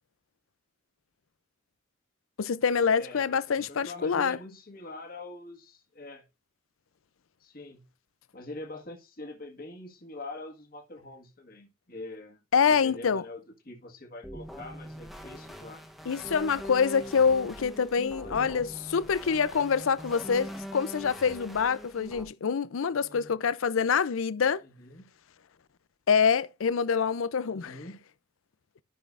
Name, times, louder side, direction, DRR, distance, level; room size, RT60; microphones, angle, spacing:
voice 1, 2.4-4.4 12.5-13.2 16.1-24.6 26.1-27.8, left 6 dB, 80° left, 0.5 m, -26 dB
voice 2, 2.9-6.2 7.4-7.8 8.3-12.4 12.7-15.8 18.2-18.7 22.9-23.3 24.6-25.1 27.5-28.0, left 2 dB, 45° left, 1.6 m, -44 dB
sound 1, 14.2-22.2, equal, ahead, 0.9 m, -42 dB
12.5 x 6.1 x 2.5 m
head